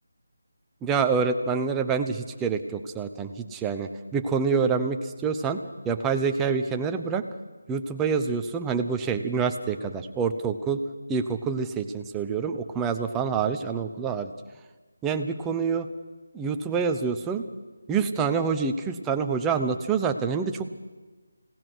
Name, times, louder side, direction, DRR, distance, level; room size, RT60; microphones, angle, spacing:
voice 1, 0.8-7.2 7.7-10.8 11.1-14.3 15.0-15.9 16.3-17.4 17.9-20.7, right 5 dB, 10° right, 6 dB, 0.9 m, -27 dB
29.5 x 18.0 x 6.3 m, 1.3 s
figure-of-eight pair, 170°, 0 cm